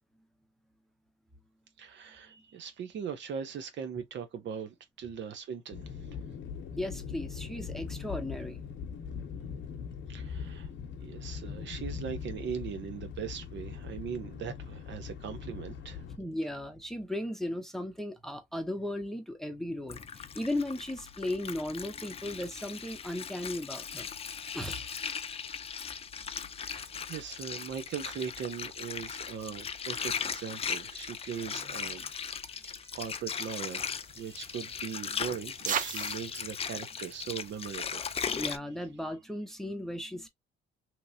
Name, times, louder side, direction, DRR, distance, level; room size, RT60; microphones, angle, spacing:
voice 1, 1.8-6.1 10.1-10.7 11.0-16.0 26.2-38.3, right 7 dB, 65° right, 0.8 m, -40 dB
sound 1, 5.7-16.2, left 6 dB, 70° left, 0.8 m, -41 dB
voice 2, 6.7-8.6 10.6-10.8 16.1-24.1 24.5-24.9 38.3-40.3, left 1 dB, ahead, 0.7 m, -36 dB
Water, 19.9-38.6, left 6 dB, 30° left, 0.4 m, -38 dB
sound 2, 33.3-38.4, right 8 dB, 40° right, 0.4 m, -41 dB
3.0 x 2.9 x 2.6 m
cardioid pair, 90°, 20 cm